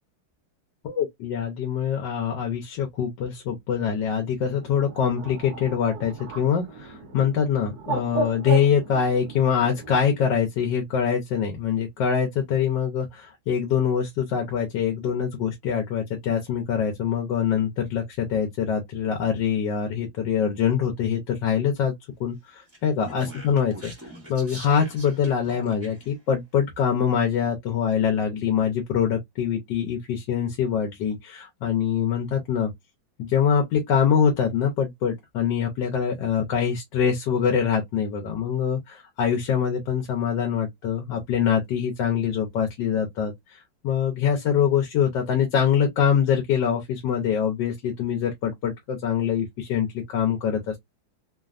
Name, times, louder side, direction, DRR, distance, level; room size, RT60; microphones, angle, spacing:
voice 1, 0.8-21.9 22.2-23.9 24.3-32.7 33.2-50.8, left 7 dB, 70° left, 1.4 m, -24 dB
Bird, 4.5-10.0, right 4 dB, 60° right, 1.2 m, -34 dB
Speech, 22.7-26.1, right 1 dB, 20° right, 0.4 m, -43 dB
3.4 x 2.2 x 2.4 m
omnidirectional pair, 2.1 m